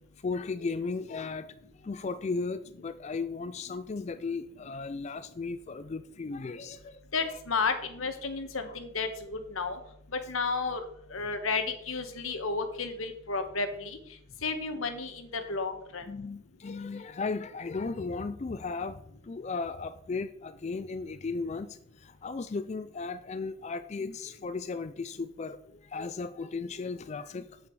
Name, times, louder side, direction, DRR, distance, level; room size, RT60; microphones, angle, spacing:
voice 1, 0.2-7.0 8.7-8.8 15.4-15.5 16.1-27.5, left 4 dB, 35° left, 12 dB, 0.4 m, -36 dB
voice 2, 7.1-9.8 10.1-10.8 11.1-14.0 14.4-16.0, left 4 dB, 85° left, 8 dB, 1.4 m, -32 dB
8.5 x 8.3 x 4.8 m, 0.72 s
head